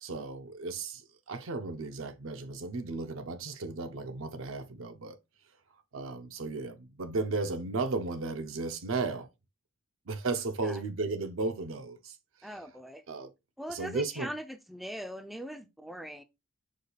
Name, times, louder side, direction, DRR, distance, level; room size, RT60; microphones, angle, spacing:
voice 1, 0.0-5.2 5.9-9.3 10.1-12.6 13.1-13.3 13.7-14.3, right 3 dB, 75° right, 0.6 m, -35 dB
voice 2, 12.4-13.0 13.6-16.2, equal, ahead, 0.3 m, -41 dB
4.9 x 2.3 x 3.9 m
head